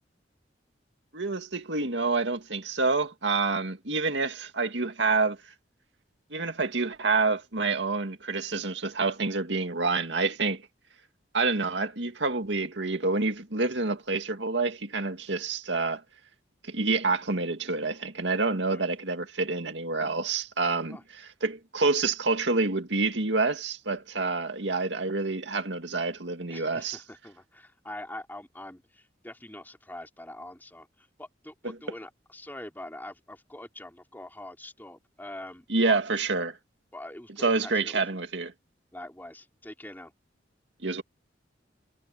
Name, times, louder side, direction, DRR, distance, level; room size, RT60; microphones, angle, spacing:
voice 1, 1.1-5.4 6.3-10.6 11.3-16.0 16.6-21.0 21.4-27.0 35.7-36.6 37.4-38.5 40.8-41.0, right 3 dB, 75° right, 2.2 m, -27 dB
voice 2, 26.5-36.0 36.9-38.0 38.9-40.1, left 1 dB, 10° left, 3.2 m, -44 dB
head